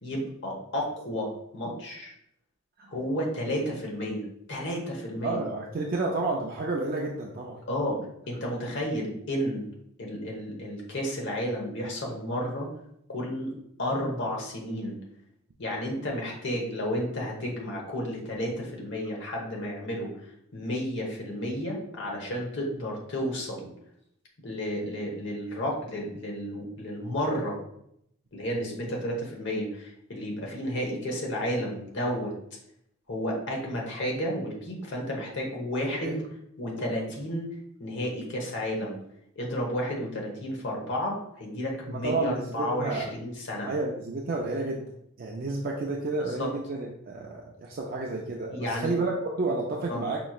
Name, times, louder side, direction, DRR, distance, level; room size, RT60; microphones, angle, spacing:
voice 1, 0.0-2.1 2.9-5.4 7.7-8.0 8.3-9.7 10.0-12.7 13.1-13.5 13.8-15.0 15.6-20.1 20.5-23.7 24.4-27.6 28.3-32.3 33.1-36.2 36.6-37.5 37.8-39.0 39.4-43.7 46.2-46.5 48.5-48.9 49.9-50.0, equal, 55° left, -1 dB, 1.0 m, -32 dB
voice 2, 5.2-7.6 36.0-36.2 41.9-43.1 43.6-44.9 45.2-50.2, right 3 dB, 45° right, -1 dB, 0.4 m, -31 dB
5.2 x 3.0 x 2.3 m, 0.76 s
head